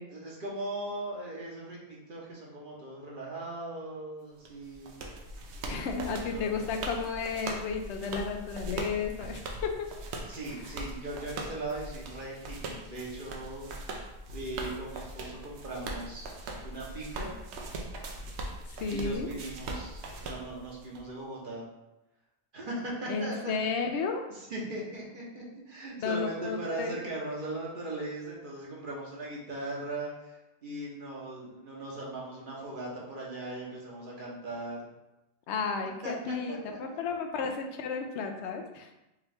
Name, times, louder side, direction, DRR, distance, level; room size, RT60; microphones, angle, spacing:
voice 1, 0.1-4.9 5.6-5.8 6.3-6.6 10.3-13.6 14.3-16.3 16.6-17.3 18.9-21.6 22.5-23.6 24.3-30.4 30.6-34.8 36.0-36.8, right 2 dB, 55° right, -4 dB, 1.0 m, -39 dB
sound 1, 4.4-21.0, right 2 dB, 80° right, 0.9 m, -40 dB
voice 2, 5.7-9.9 18.7-19.3 23.1-24.2 26.0-27.0 35.5-39.0, left 5 dB, 90° left, 4 dB, 0.9 m, -33 dB
3.6 x 2.9 x 3.3 m, 0.95 s
omnidirectional pair, 1.1 m